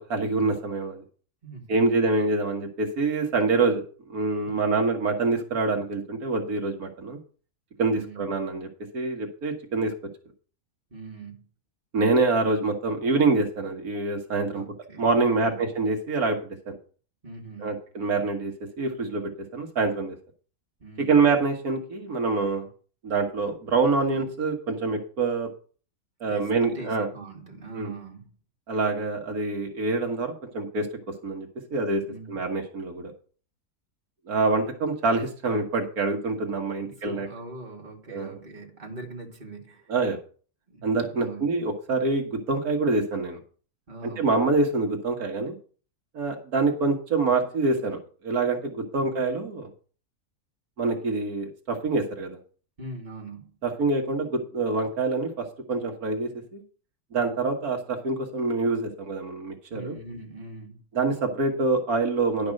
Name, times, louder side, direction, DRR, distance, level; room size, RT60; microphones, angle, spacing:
voice 1, 0.1-1.0 1.7-3.8 4.1-7.2 7.8-8.7 8.9-9.9 11.9-14.6 15.0-16.4 16.7-16.8 17.6-20.2 21.1-22.7 23.0-25.5 26.2-27.1 27.7-27.9 28.7-30.9 31.2-32.0 32.3-33.1 34.3-37.3 38.1-38.4 39.9-40.2 40.8-43.4 44.2-45.6 46.1-49.7 50.8-52.4 53.6-56.6 57.1-59.9 61.0-62.5, right 3 dB, 80° right, 3 dB, 1.9 m, -26 dB
voice 2, 1.4-2.0 4.4-4.8 7.9-8.3 10.9-11.4 14.5-15.6 17.2-17.8 20.8-21.2 26.3-28.3 32.1-32.4 36.8-39.9 40.7-41.5 43.9-44.3 52.8-53.5 59.7-60.8, right 3 dB, 30° right, 0 dB, 2.3 m, -42 dB
11.0 x 5.2 x 6.4 m, 0.40 s
omnidirectional pair, 1.6 m